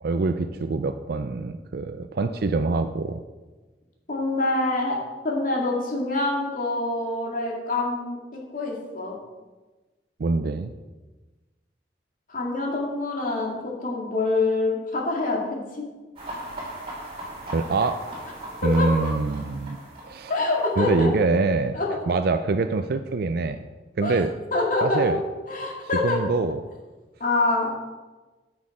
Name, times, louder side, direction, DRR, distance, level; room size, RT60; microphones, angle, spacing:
voice 1, 0.0-3.2 10.2-10.7 17.4-18.0 18.6-19.8 20.0-20.3 20.8-21.8 22.1-23.6 24.0-24.3 24.8-25.2 26.0-26.6, right 3 dB, 60° right, 8 dB, 0.4 m, -24 dB
voice 2, 4.1-5.0 5.2-9.2 12.3-15.9 18.6-19.1 20.3-21.1 21.7-21.9 24.0-24.2 24.5-25.2 25.5-26.2 27.2-27.7, left 2 dB, 50° left, -2 dB, 2.1 m, -25 dB
sound 1, 16.2-21.2, right 1 dB, 35° right, 3.2 m, -39 dB
9.5 x 6.3 x 4.9 m, 1.2 s
head